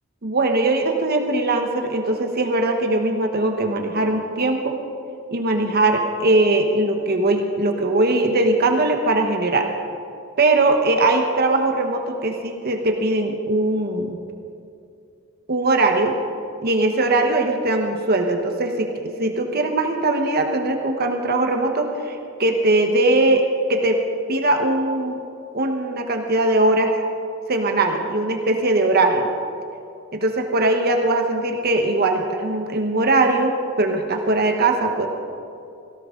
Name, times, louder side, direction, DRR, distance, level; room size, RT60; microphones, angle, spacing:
voice 1, 0.2-4.8 5.3-9.7 10.4-14.2 15.5-16.2 16.6-18.9 19.2-24.0 24.3-25.2 25.5-26.9 27.5-29.3 30.1-35.1, right 2 dB, 50° right, 4 dB, 1.2 m, -20 dB
18.0 x 16.5 x 3.8 m, 2.6 s
head